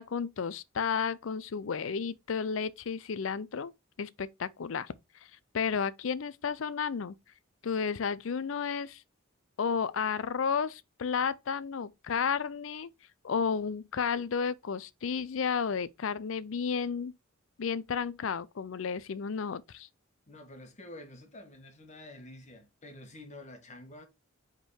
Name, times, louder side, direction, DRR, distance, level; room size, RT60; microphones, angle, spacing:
voice 1, 0.0-3.7 4.0-4.9 5.5-7.2 7.6-9.0 9.6-12.9 13.2-17.1 17.6-19.9, left 6 dB, 70° left, 0.5 m, -32 dB
voice 2, 20.3-24.0, left 1 dB, 35° left, 1.5 m, -48 dB
5.1 x 3.8 x 4.7 m
head